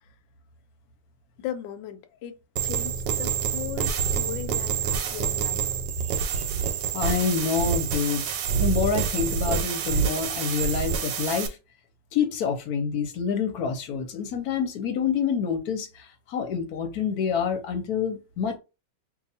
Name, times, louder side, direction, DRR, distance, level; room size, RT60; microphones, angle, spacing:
voice 1, 1.4-2.4 2.6-5.7, left 10 dB, 85° left, 1.3 m, -37 dB
sound 1, 2.6-11.5, right 6 dB, 85° right, 1.4 m, -27 dB
voice 2, 6.9-11.6 12.1-18.6, left 6 dB, 65° left, 1.1 m, -27 dB
2.9 x 2.5 x 4.1 m
omnidirectional pair, 2.0 m